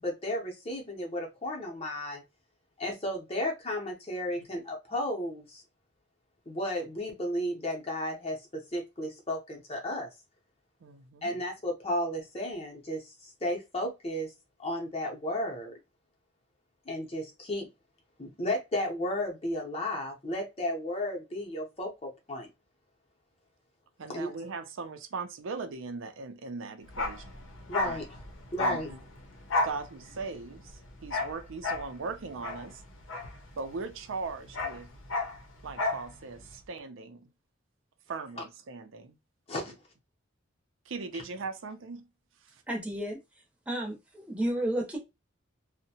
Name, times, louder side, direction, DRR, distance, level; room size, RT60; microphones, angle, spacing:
voice 1, 0.0-2.2 2.8-5.6 6.5-10.1 11.2-13.1 13.4-14.3 14.6-15.7 16.9-17.7 18.2-22.5 24.1-24.3 27.7-28.0 28.5-28.9 39.5-39.7, left 1 dB, 30° left, 0.7 m, -33 dB
voice 2, 10.8-11.4 24.0-27.4 27.8-28.0 28.6-29.0 29.6-32.8 33.6-34.9 35.6-37.3 38.1-39.2 39.7-39.8 40.9-42.1 42.4-42.6, right 4 dB, 85° right, 0.5 m, -39 dB
Bark, 26.9-33.9 34.2-36.1 36.3-36.5, left 2 dB, 85° left, 0.7 m, -33 dB
voice 3, 42.7-43.2 43.7-45.0, right 1 dB, 5° right, 0.7 m, -31 dB
2.7 x 2.1 x 2.7 m
head